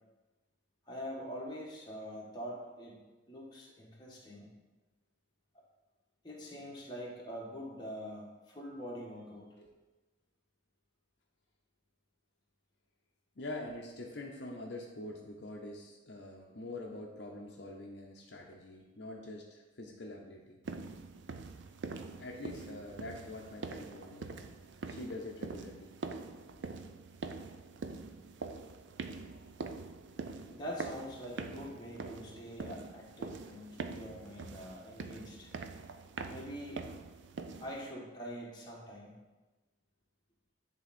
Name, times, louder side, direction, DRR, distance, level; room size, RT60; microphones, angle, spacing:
voice 1, 0.9-3.0 3.3-4.5 6.2-9.5 30.5-35.5 36.2-36.9 37.5-39.1, equal, 20° left, -4 dB, 1.4 m, -44 dB
voice 2, 13.4-20.6 22.2-24.3 24.9-26.0, left 2 dB, 60° left, 0 dB, 0.7 m, -45 dB
sound 1, 20.6-37.9, right 4 dB, 70° right, 0.5 m, -44 dB
9.9 x 3.6 x 4.2 m, 1.2 s
head